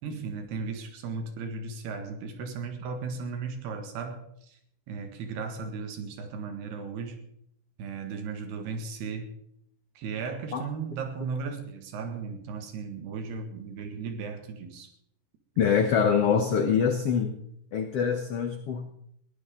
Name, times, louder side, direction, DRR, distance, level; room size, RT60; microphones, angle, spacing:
voice 1, 0.0-4.6 4.9-7.2 7.8-9.3 10.0-14.9, right 5 dB, 80° right, 6 dB, 3.9 m, -36 dB
voice 2, 15.6-17.4 17.7-18.9, left 6 dB, 90° left, 5 dB, 1.3 m, -24 dB
21.0 x 15.5 x 3.8 m, 0.71 s
omnidirectional pair, 4.6 m